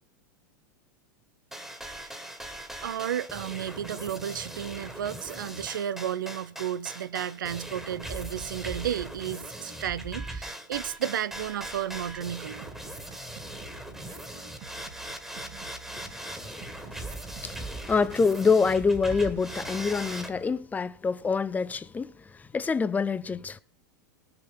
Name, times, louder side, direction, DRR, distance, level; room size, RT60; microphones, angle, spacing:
sound 1, 1.5-20.3, right 1 dB, 5° right, 1.9 m, -40 dB
voice 1, 2.8-12.7, right 10 dB, 85° right, 0.7 m, -33 dB
sound 2, 12.6-20.6, right 5 dB, 60° right, 1.9 m, -49 dB
voice 2, 17.9-22.1 22.5-23.6, left 5 dB, 15° left, 0.6 m, -25 dB
18.5 x 6.9 x 5.5 m
hypercardioid pair, 110°, 10 cm